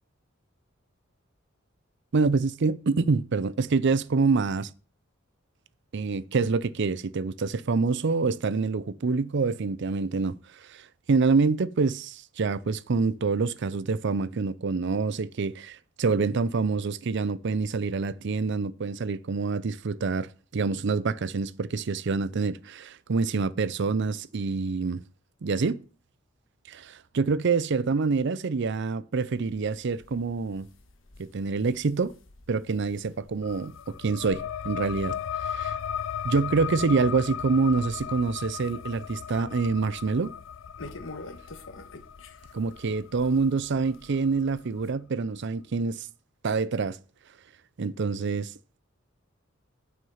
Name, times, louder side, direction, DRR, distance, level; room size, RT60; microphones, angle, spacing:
voice 1, 2.1-4.7 5.9-10.4 10.7-25.0 25.4-25.8 26.7-30.7 31.2-32.1 32.5-35.1 35.5-35.8 36.2-40.3 42.5-46.1 46.4-47.0 47.8-48.5, right 4 dB, 60° right, 0.5 m, -26 dB
sound 1, 29.4-44.9, left 2 dB, 70° left, 1.4 m, -50 dB
sound 2, 33.4-44.6, left 8 dB, 90° left, 0.4 m, -36 dB
9.4 x 6.1 x 7.1 m
head